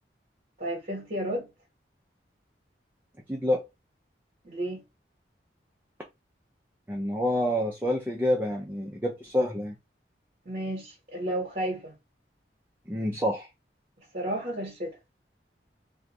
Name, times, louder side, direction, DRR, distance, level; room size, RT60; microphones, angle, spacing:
voice 1, 0.6-1.5 4.4-4.8 10.4-11.9 14.1-14.9, right 1 dB, 45° right, 1.0 m, -32 dB
voice 2, 3.3-3.6 6.9-9.7 12.9-13.5, left 1 dB, 10° right, 0.4 m, -27 dB
2.5 x 2.3 x 4.0 m
head